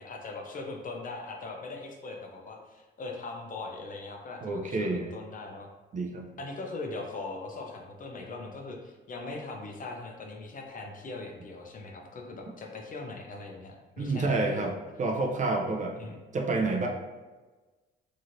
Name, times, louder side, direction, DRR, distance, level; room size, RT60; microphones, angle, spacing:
voice 1, 0.0-5.7 6.4-14.7 16.0-16.2, left 3 dB, 45° left, 1 dB, 0.6 m, -40 dB
voice 2, 4.4-5.1 5.9-6.3 14.0-14.7 15.0-16.0 16.3-16.9, right 3 dB, 40° right, 2 dB, 0.5 m, -28 dB
3.0 x 2.7 x 2.6 m, 1.2 s
cardioid pair, 90°, 20 cm